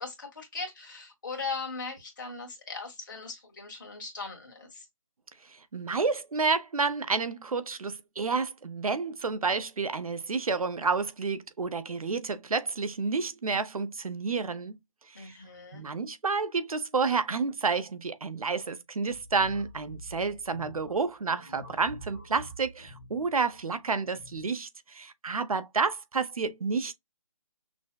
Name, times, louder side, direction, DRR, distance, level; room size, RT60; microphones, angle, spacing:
voice 1, 0.0-4.9 15.1-15.8, left 4 dB, 35° left, 1.6 m, -39 dB
voice 2, 5.4-14.8 15.1-15.4 15.7-26.9, right 4 dB, 85° right, 0.7 m, -30 dB
sound 1, 19.1-24.5, equal, 10° right, 0.4 m, -48 dB
6.0 x 2.1 x 2.2 m
hypercardioid pair, 175°, 18 cm